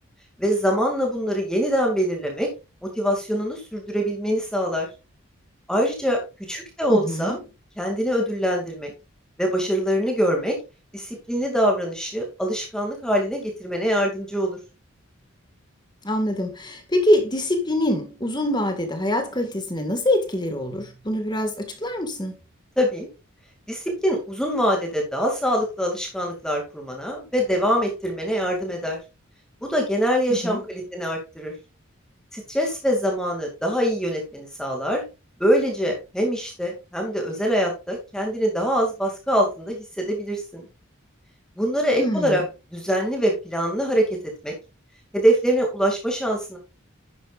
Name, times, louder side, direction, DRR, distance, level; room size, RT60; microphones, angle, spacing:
voice 1, 0.4-2.5 2.8-4.9 5.7-6.2 6.5-7.3 7.8-8.9 9.4-10.6 10.9-14.6 22.8-23.1 23.7-29.0 29.6-31.5 32.3-35.0 35.4-40.6 41.6-42.4 42.7-44.1 44.4-44.5 45.1-46.6, equal, 5° left, 2.4 m, -24 dB
voice 2, 6.9-7.4 16.0-22.3 30.3-30.6 42.0-42.4, left 1 dB, 20° left, 1.8 m, -24 dB
11.0 x 8.9 x 2.5 m
head